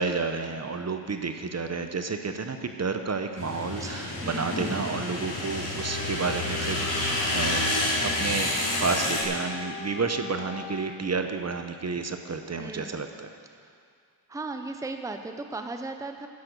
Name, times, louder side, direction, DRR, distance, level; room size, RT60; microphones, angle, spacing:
voice 1, 0.0-7.7 8.2-8.5 8.8-13.3, right 4 dB, 35° right, 6 dB, 0.9 m, -31 dB
sound 1, 3.4-9.2, left 1 dB, 45° left, 3.5 m, -29 dB
voice 2, 4.2-5.3 12.6-13.0 14.3-16.3, right 3 dB, 5° right, 6 dB, 0.7 m, -37 dB
Wind instrument woodwind instrument, 5.8-11.0, left 5 dB, 30° left, 0.8 m, -40 dB
10.5 x 10.0 x 6.7 m, 2.2 s
cardioid pair, 85°, 45 cm